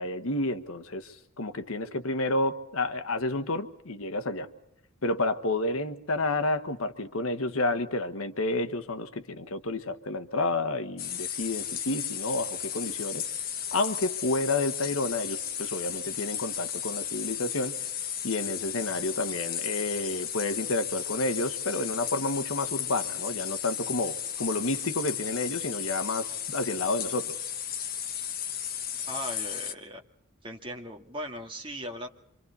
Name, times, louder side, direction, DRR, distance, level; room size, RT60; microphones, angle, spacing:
voice 1, 0.0-4.5 5.0-13.3 13.7-17.7 18.2-27.3, left 2 dB, 70° left, 9 dB, 1.3 m, -30 dB
sound 1, 11.0-29.7, left 9 dB, 40° left, 1.2 m, -34 dB
voice 2, 29.1-30.0 30.4-32.1, equal, 25° right, 2 dB, 2.1 m, -38 dB
26.5 x 26.0 x 4.1 m, 0.80 s
head